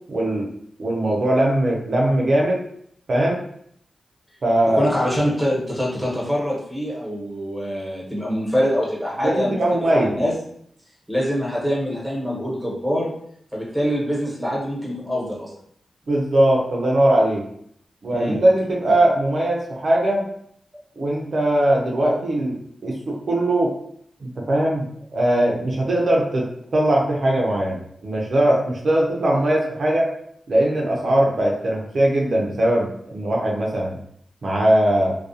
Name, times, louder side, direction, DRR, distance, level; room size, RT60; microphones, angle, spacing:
voice 1, 0.1-0.5 0.8-2.6 3.1-3.4 4.4-4.8 9.2-10.2 16.1-17.4 18.0-20.2 21.0-23.7 24.2-30.1 30.5-33.9 34.4-35.2, right 1 dB, 65° right, -2 dB, 0.5 m, -20 dB
voice 2, 4.7-9.6 9.9-10.3 11.1-13.1 13.5-15.5 18.1-18.4, equal, 5° right, -4 dB, 1.1 m, -24 dB
2.3 x 2.3 x 2.7 m, 0.67 s
cardioid pair, 50°, 0 cm